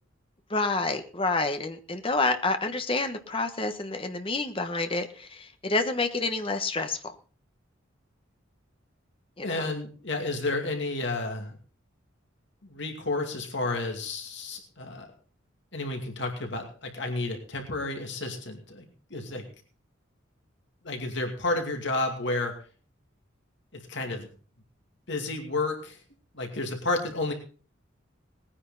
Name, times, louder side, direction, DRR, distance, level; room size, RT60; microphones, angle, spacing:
voice 1, 0.5-7.1 9.4-9.7, left 3 dB, 25° left, 7 dB, 1.3 m, -28 dB
voice 2, 9.4-11.6 12.6-15.1 15.7-18.8 19.1-19.4 20.8-22.6 23.7-24.3 25.1-26.0 26.3-27.3, left 2 dB, 60° left, 3 dB, 2.5 m, -31 dB
19.5 x 9.9 x 4.0 m, 0.38 s
head